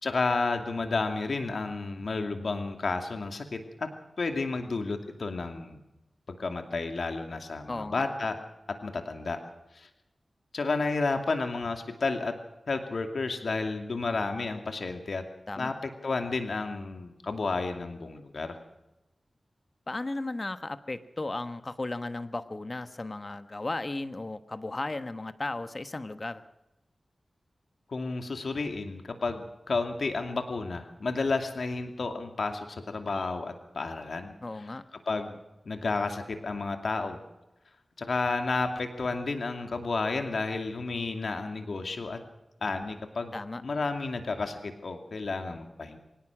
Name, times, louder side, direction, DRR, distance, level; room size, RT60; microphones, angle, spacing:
voice 1, 0.0-3.9 4.2-5.8 6.3-8.4 8.8-9.4 9.7-9.9 10.5-12.3 12.7-15.2 15.6-18.6 27.9-34.3 35.1-35.4 35.7-37.2 38.0-42.2 42.6-43.3 43.6-46.0, left 3 dB, 75° left, 6 dB, 2.5 m, -31 dB
voice 2, 7.7-8.0 15.5-15.7 19.9-26.4 34.4-34.8 43.3-43.6, left 2 dB, 40° left, 11 dB, 1.2 m, -35 dB
24.0 x 17.5 x 6.2 m, 0.92 s
wide cardioid pair, 55°, 0 cm